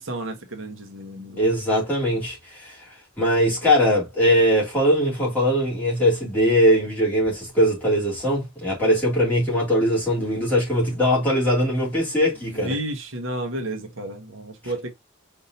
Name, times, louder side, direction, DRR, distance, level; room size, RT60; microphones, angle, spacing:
voice 1, 0.0-1.4 12.4-14.9, right 1 dB, 75° right, 1.2 m, -32 dB
voice 2, 1.4-2.7 3.2-12.8, equal, 10° left, 3.1 m, -21 dB
5.4 x 3.7 x 2.5 m
head